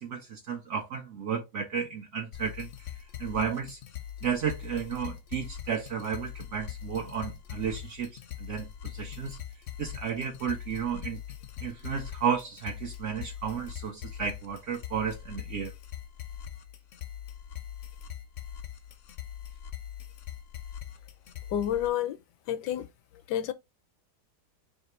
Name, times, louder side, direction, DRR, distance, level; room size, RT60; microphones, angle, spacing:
voice 1, 0.0-2.7 3.2-3.8 4.2-9.4 9.8-11.2 11.6-15.7, right 7 dB, 65° right, 0.8 m, -33 dB
sound 1, 2.3-21.9, left 10 dB, 65° left, 0.8 m, -42 dB
voice 2, 21.5-22.2 22.5-22.9 23.3-23.5, left 10 dB, 80° left, 1.2 m, -29 dB
3.3 x 2.9 x 4.2 m
omnidirectional pair, 1.8 m